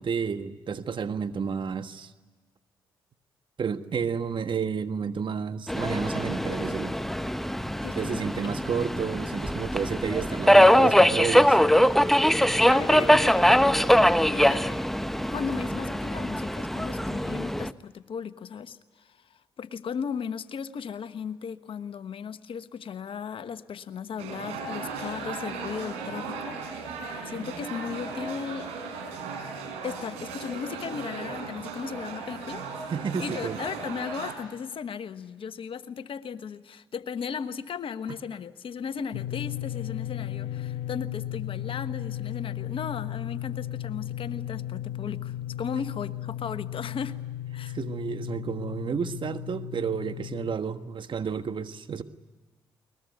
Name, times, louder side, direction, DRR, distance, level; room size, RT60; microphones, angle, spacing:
voice 1, 0.0-2.1 3.6-7.0 7.9-11.6 32.9-33.6 47.7-52.0, right 6 dB, 50° right, 10 dB, 1.5 m, -31 dB
Subway metro underground, 5.7-17.7, equal, 5° left, 1.0 m, -22 dB
voice 2, 7.8-8.2 12.2-13.4 14.3-14.7 15.3-28.7 29.8-32.6 33.2-47.2 47.5-47.8, left 6 dB, 60° left, 11 dB, 1.3 m, -36 dB
sound 1, 24.2-34.3, right 4 dB, 85° right, 4.6 m, -37 dB
sound 2, 39.1-50.6, left 12 dB, 75° left, 1.1 m, -35 dB
21.5 x 21.0 x 9.4 m, 1.3 s
supercardioid pair, 50°, 10 cm